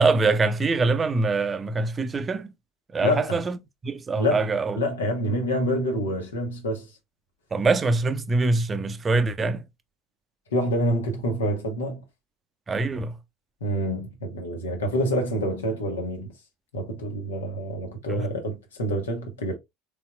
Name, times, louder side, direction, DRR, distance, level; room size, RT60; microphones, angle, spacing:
voice 1, 0.0-2.5 2.9-3.6 3.8-4.8 7.5-9.6 12.7-13.1 18.1-18.2, right 3 dB, 25° right, 0.6 m, -23 dB
voice 2, 3.0-3.4 4.2-4.5 4.8-6.9 10.5-12.0 13.6-16.3 16.7-19.6, equal, 75° left, 1.2 m, -27 dB
4.2 x 3.5 x 2.3 m
figure-of-eight pair, 70°, 0 cm